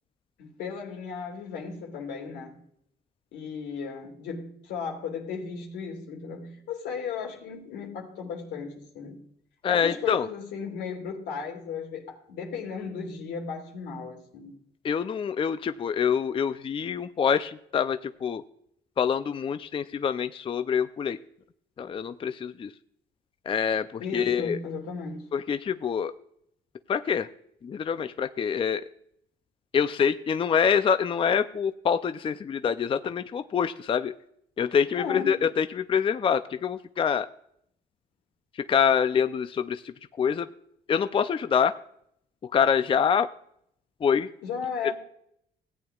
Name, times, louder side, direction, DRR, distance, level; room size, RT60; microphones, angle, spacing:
voice 1, 0.4-2.6 3.3-9.2 9.7-14.6 24.0-25.3 34.9-35.4 44.4-44.9, left 5 dB, 90° left, 2.7 m, -35 dB
voice 2, 9.6-10.3 14.8-18.4 19.0-21.2 21.8-22.7 23.5-24.6 25.3-26.1 26.9-27.3 27.6-28.8 29.7-34.1 34.6-37.3 38.6-40.5 40.9-41.7 42.5-43.3 44.0-44.3, left 7 dB, 30° left, 0.4 m, -25 dB
16.5 x 8.8 x 2.4 m
cardioid pair, 95°, 17 cm